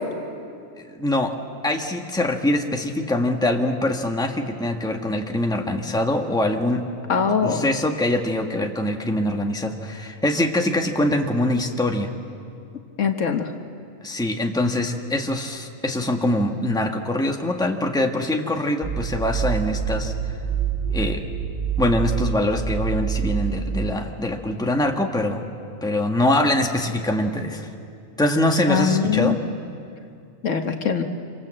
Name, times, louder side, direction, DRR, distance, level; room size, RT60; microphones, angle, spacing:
voice 1, 0.8-1.4 1.6-6.9 7.4-12.1 14.0-20.1 20.9-21.2 21.8-25.4 25.8-27.7 28.2-29.4, left 1 dB, 5° left, 2 dB, 1.4 m, -23 dB
voice 2, 7.1-7.6 13.0-13.5 28.7-29.6 30.4-31.0, left 6 dB, 65° left, 5 dB, 1.5 m, -22 dB
sound 1, 18.8-23.9, right 7 dB, 40° right, 1.7 m, -26 dB
27.0 x 25.0 x 7.7 m, 2.5 s
omnidirectional pair, 1.4 m